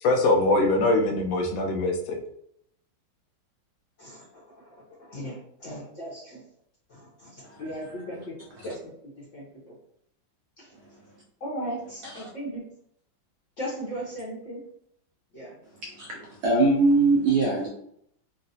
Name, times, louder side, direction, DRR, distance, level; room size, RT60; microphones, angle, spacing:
voice 1, 0.0-2.2, left 2 dB, 80° left, 2 dB, 1.3 m, -22 dB
voice 2, 4.0-4.4 5.1-6.4 6.9-7.3 7.6-8.3 8.6-9.4 10.6-10.7 11.4-12.6 13.6-14.6 15.3-15.6, equal, 55° left, -6 dB, 0.9 m, -37 dB
voice 3, 16.4-17.7, right 3 dB, 70° right, -2 dB, 0.9 m, -21 dB
3.8 x 2.0 x 2.6 m, 0.72 s
omnidirectional pair, 2.2 m